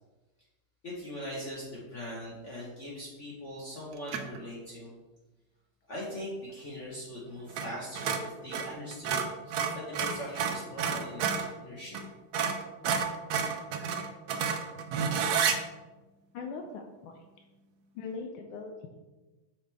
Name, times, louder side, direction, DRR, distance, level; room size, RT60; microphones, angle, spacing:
voice 1, 0.8-4.9 5.9-12.0, left 1 dB, 40° left, -5 dB, 1.2 m, -41 dB
sound 1, 4.1-4.4 7.5-7.7 7.9-11.5 11.9-12.0 12.3-15.6, right 6 dB, 80° right, 0.8 m, -30 dB
voice 2, 16.3-17.2 17.9-19.1, left 4 dB, 85° left, 3 dB, 1.5 m, -41 dB
6.0 x 5.1 x 3.3 m, 1.1 s
omnidirectional pair, 2.3 m